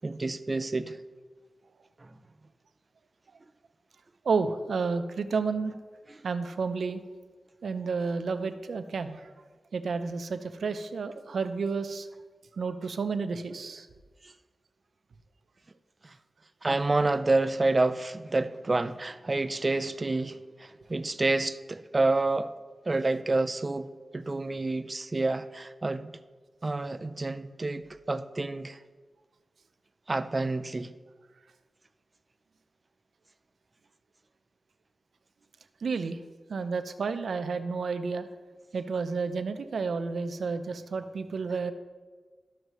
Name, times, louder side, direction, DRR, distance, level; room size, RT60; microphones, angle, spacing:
voice 1, 0.0-1.0 2.0-2.2 14.2-14.3 16.0-16.1 16.6-22.5 22.9-26.1 26.6-28.8 30.1-30.9, right 2 dB, 30° right, 0.4 m, -28 dB
voice 2, 4.2-5.8 6.2-7.0 7.6-9.3 9.7-12.1 12.6-13.9 35.8-36.2 36.5-38.3 38.7-41.7, right 4 dB, 85° right, 0.5 m, -31 dB
12.5 x 6.5 x 3.0 m
wide cardioid pair, 110°, 0 cm